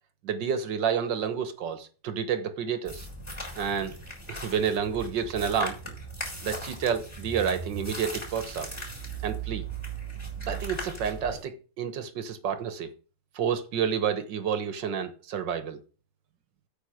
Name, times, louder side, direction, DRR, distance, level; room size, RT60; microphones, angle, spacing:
voice 1, 0.2-3.1 3.6-4.0 4.3-5.8 6.4-8.7 9.2-9.6 10.4-12.9 13.4-15.8, right 7 dB, 85° right, 1.8 m, -29 dB
sound 1, 2.8-11.4, right 3 dB, 15° left, 4.2 m, -38 dB
8.7 x 5.1 x 6.4 m
omnidirectional pair, 1.9 m